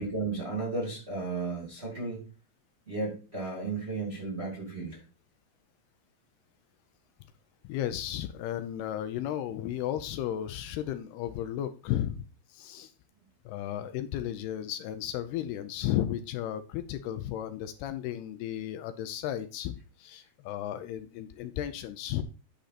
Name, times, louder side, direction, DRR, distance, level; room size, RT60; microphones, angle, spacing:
voice 1, 0.0-2.2 2.9-5.0, right 3 dB, 20° right, -3 dB, 2.0 m, -34 dB
voice 2, 7.6-12.2 12.5-12.9 13.5-22.2, left 12 dB, 80° left, 10 dB, 2.5 m, -34 dB
10.0 x 5.4 x 4.2 m, 0.34 s
omnidirectional pair, 4.8 m